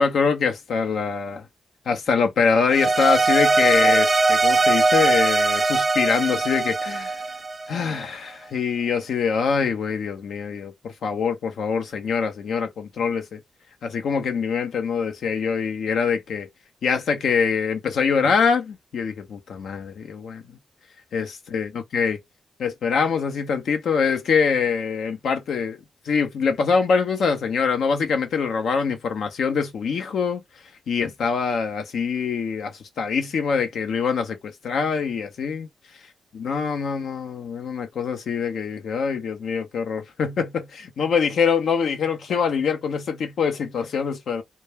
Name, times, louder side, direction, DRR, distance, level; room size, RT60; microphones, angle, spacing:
voice 1, 0.0-1.4 1.9-7.2 7.7-13.4 13.8-16.5 16.8-20.4 21.1-22.2 22.6-25.8 26.1-30.4 30.9-35.7 36.3-44.4, left 5 dB, 75° left, 0.6 m, -24 dB
sound 1, 2.7-8.0, right 3 dB, 40° right, 0.4 m, -20 dB
2.2 x 2.2 x 3.3 m
supercardioid pair, 45°, 0 cm